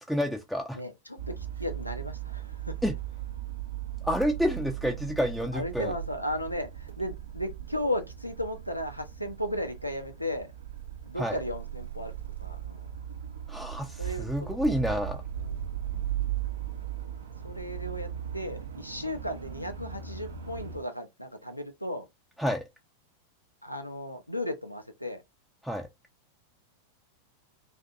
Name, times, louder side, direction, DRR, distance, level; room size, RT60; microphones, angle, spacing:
voice 1, 0.1-0.8 2.8-2.9 4.0-5.9 11.2-11.4 13.5-15.2 22.4-22.6 25.6-25.9, equal, ahead, 0.3 m, -29 dB
voice 2, 0.7-2.7 5.5-10.5 11.0-12.1 12.4-12.9 14.0-14.6 15.4-15.7 17.4-22.1 23.6-25.2, left 1 dB, 90° left, 0.5 m, -35 dB
sound 1, 1.2-20.8, right 10 dB, 70° right, 0.4 m, -38 dB
2.5 x 2.4 x 2.3 m
figure-of-eight pair, 90°, 0 cm